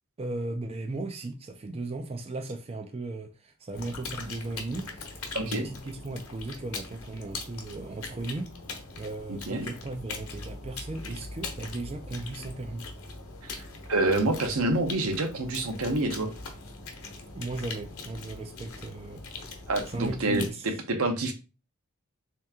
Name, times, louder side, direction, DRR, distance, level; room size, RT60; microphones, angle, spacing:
voice 1, 0.2-8.5 9.0-12.9 17.3-19.2 19.9-20.7, right 2 dB, 25° right, 0.4 m, -36 dB
sound 1, 3.7-20.5, left 3 dB, 90° left, 0.9 m, -41 dB
voice 2, 5.3-5.7 9.5-9.7 13.4-13.5 13.9-16.3 19.7-20.4 20.9-21.3, right 2 dB, 80° right, 0.8 m, -27 dB
3.3 x 2.9 x 3.5 m
head